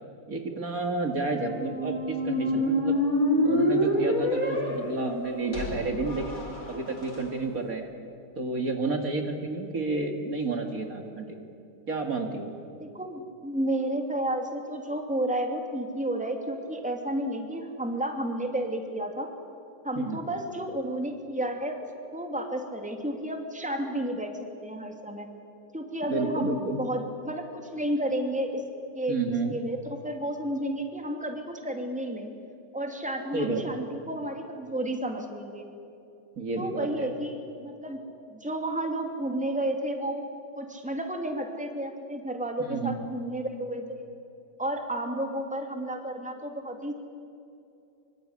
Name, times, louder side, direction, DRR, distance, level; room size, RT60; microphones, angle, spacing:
voice 1, 0.3-3.0 3.4-7.9 8.4-11.3 11.9-12.5 20.0-20.2 26.1-26.8 29.1-29.6 33.3-33.8 36.4-37.1 42.6-43.0, right 3 dB, 55° right, 4 dB, 2.5 m, -30 dB
sound 1, 1.2-7.2, left 1 dB, 50° left, 5.7 m, -27 dB
voice 2, 12.8-19.3 19.8-21.8 22.1-24.3 24.6-25.3 25.7-28.6 28.9-29.2 29.5-32.3 32.7-35.7 36.6-38.0 38.3-40.2 40.5-44.0 44.6-46.9, right 1 dB, 5° right, 4 dB, 2.8 m, -31 dB
24.5 x 24.5 x 9.8 m, 2.7 s
omnidirectional pair, 1.8 m